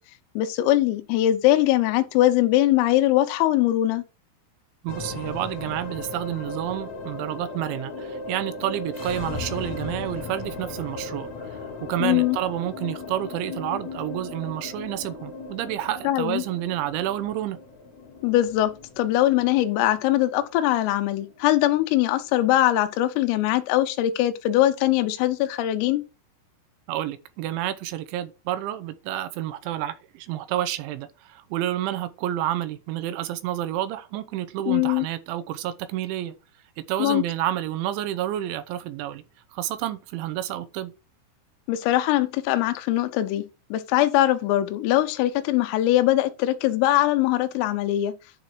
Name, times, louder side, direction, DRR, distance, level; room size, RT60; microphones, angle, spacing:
voice 1, 0.4-4.0 12.0-12.4 16.1-16.4 18.2-26.0 34.7-35.1 37.0-37.2 41.7-43.4 43.7-48.1, left 14 dB, 85° left, 3.5 m, -21 dB
voice 2, 4.8-17.6 26.9-36.3 36.8-39.2 39.5-40.9, right 13 dB, 80° right, 2.9 m, -29 dB
sound 1, 4.9-23.4, left 3 dB, 65° left, 1.8 m, -37 dB
11.0 x 4.9 x 4.6 m
omnidirectional pair, 5.8 m